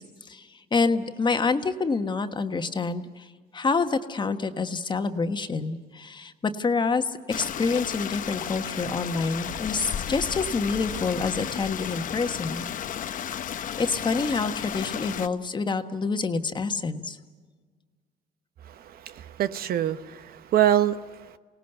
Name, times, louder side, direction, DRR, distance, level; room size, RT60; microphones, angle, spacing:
voice 1, 0.0-12.7 13.8-17.2, left 4 dB, 25° left, 7 dB, 1.4 m, -27 dB
Stream, 7.3-15.3, left 9 dB, 50° left, 0.9 m, -33 dB
voice 2, 18.7-21.4, right 11 dB, 60° right, 12 dB, 1.0 m, -25 dB
29.0 x 18.5 x 6.9 m, 1.5 s
cardioid pair, 110°, 17 cm